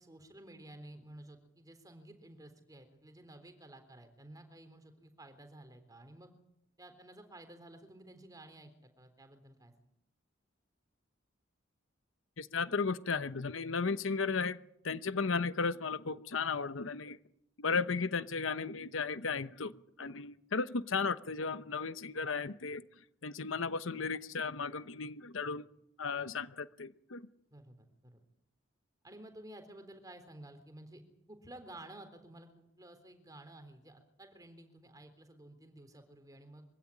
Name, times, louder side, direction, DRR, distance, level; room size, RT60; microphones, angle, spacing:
voice 1, 0.0-6.3 6.8-9.7 26.2-26.3 27.5-28.2 29.0-31.0 31.3-36.6, right 1 dB, 20° right, 3.8 m, -53 dB
voice 2, 12.4-14.6 14.8-17.2 17.6-19.7 20.0-22.8 23.2-25.7 26.0-27.3, left 4 dB, 80° left, 0.9 m, -35 dB
24.5 x 16.5 x 9.8 m
head